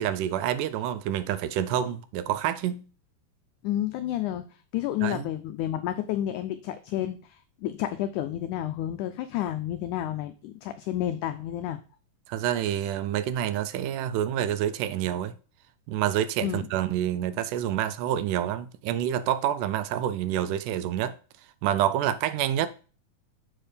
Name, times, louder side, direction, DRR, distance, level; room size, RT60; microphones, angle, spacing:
voice 1, 0.0-2.8 5.0-5.3 12.3-15.3 15.9-21.2 21.6-22.7, right 11 dB, 80° right, 1.9 m, -27 dB
voice 2, 3.6-4.5 4.7-11.8 16.4-16.7, left 12 dB, 85° left, 1.7 m, -30 dB
7.4 x 4.5 x 4.9 m
omnidirectional pair, 4.1 m